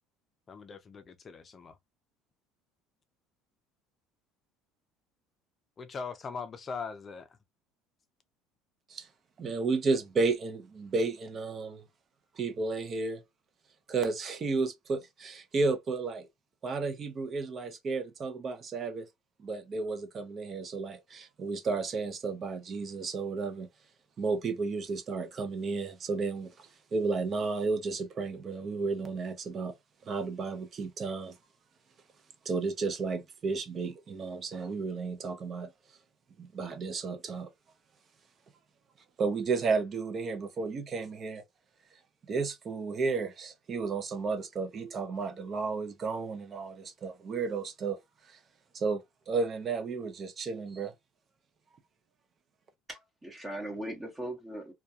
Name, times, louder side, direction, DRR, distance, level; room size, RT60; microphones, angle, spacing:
voice 1, 0.5-1.8 5.8-7.4, left 5 dB, 30° left, 0.5 m, -41 dB
voice 2, 9.4-11.8 12.4-13.2 13.9-16.3 16.6-19.1 19.4-23.7 24.2-29.7 30.1-31.3 32.5-35.7 36.4-37.5 39.2-41.4 42.3-48.0 48.3-48.4 48.7-50.9, right 4 dB, 35° right, 0.5 m, -32 dB
voice 3, 52.9-54.7, right 1 dB, 15° right, 0.9 m, -39 dB
2.3 x 2.2 x 2.6 m
cardioid pair, 120°, 0 cm